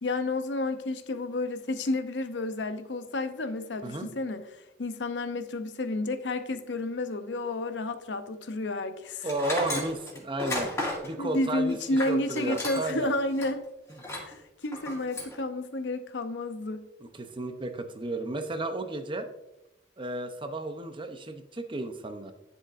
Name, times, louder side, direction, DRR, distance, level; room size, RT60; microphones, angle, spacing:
voice 1, 0.0-4.4 4.8-9.3 9.7-9.8 11.2-13.7 14.2-16.8, left 2 dB, 85° left, 0.7 m, -31 dB
voice 2, 9.2-10.7 11.0-13.1 17.1-19.3 20.0-22.3, right 2 dB, 30° right, 0.7 m, -33 dB
Tools, 9.3-13.0 13.4-13.5 14.0-14.3 14.7-15.4, left 1 dB, 15° left, 2.1 m, -34 dB
9.7 x 7.0 x 2.5 m
head